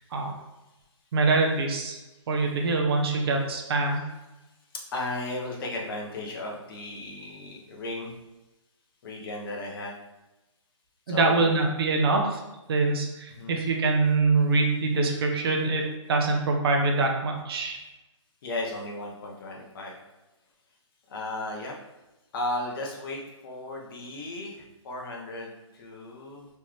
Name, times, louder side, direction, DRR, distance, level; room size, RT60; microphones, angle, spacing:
voice 1, 1.1-2.0 2.3-4.1 11.1-12.4 12.7-17.8, right 3 dB, 50° right, 1 dB, 0.9 m, -24 dB
voice 2, 4.9-8.1 9.0-9.9 11.1-11.6 13.3-13.6 18.4-19.9 21.1-21.7 22.3-26.5, left 2 dB, 45° left, -1 dB, 1.1 m, -35 dB
4.2 x 3.6 x 3.2 m, 1.0 s
hypercardioid pair, 160°, 16 cm